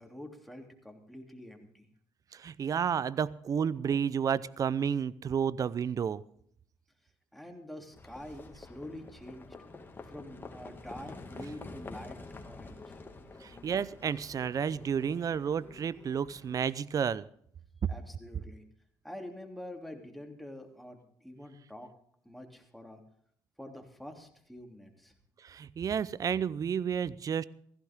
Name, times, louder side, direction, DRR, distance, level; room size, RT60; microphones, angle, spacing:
voice 1, 0.0-1.9 7.3-9.5 10.0-13.5 17.9-18.6 19.0-21.9 22.2-23.0 23.6-25.1, left 1 dB, ahead, 3 dB, 3.1 m, -47 dB
voice 2, 2.3-6.2 13.4-17.3 25.4-27.5, right 7 dB, 45° right, 20 dB, 0.6 m, -31 dB
Livestock farm animals working animals, 7.9-16.6, left 3 dB, 25° left, 2.2 m, -48 dB
16.0 x 15.5 x 3.7 m, 0.64 s
cardioid pair, 85°, 8 cm